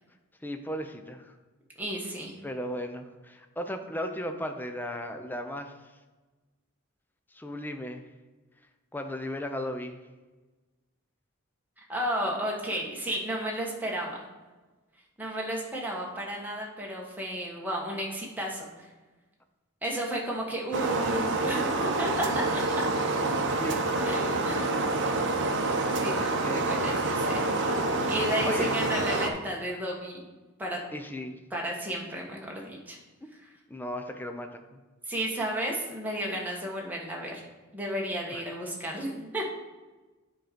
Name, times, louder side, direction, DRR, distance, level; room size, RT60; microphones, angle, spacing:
voice 1, 0.4-1.3 2.4-5.7 7.3-8.0 8.9-10.0 23.6-23.9 26.4-27.2 28.3-28.7 30.9-31.4 33.2-33.3 33.7-34.8 38.3-38.4, left 1 dB, 10° left, 6 dB, 0.5 m, -36 dB
voice 2, 1.8-2.3 11.9-14.3 15.2-18.9 19.8-22.8 24.0-24.6 26.0-27.5 28.1-30.3 30.6-30.8 31.5-33.0 35.1-37.4 37.7-39.5, equal, 10° right, -2 dB, 1.3 m, -33 dB
sound 1, 20.7-29.3, right 2 dB, 60° right, 0.7 m, -27 dB
9.4 x 3.8 x 5.1 m, 1.2 s
head